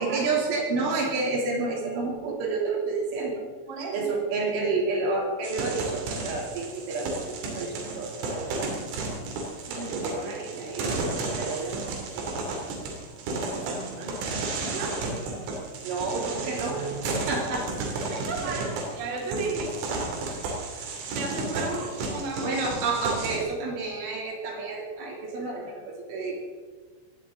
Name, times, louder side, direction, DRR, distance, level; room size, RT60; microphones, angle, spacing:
voice 1, 0.0-3.4 3.9-8.6 9.7-12.9 15.8-16.9 17.3-17.7 18.4-18.6 22.4-26.4, right 3 dB, 70° right, -1 dB, 5.2 m, -30 dB
sound 1, 5.4-23.4, right 3 dB, 90° right, 5.5 m, -33 dB
voice 2, 13.7-15.0 18.1-18.7 19.0-19.7 21.1-22.6, right 3 dB, 40° right, -1 dB, 4.3 m, -34 dB
21.0 x 16.5 x 3.8 m, 1.4 s
omnidirectional pair, 5.9 m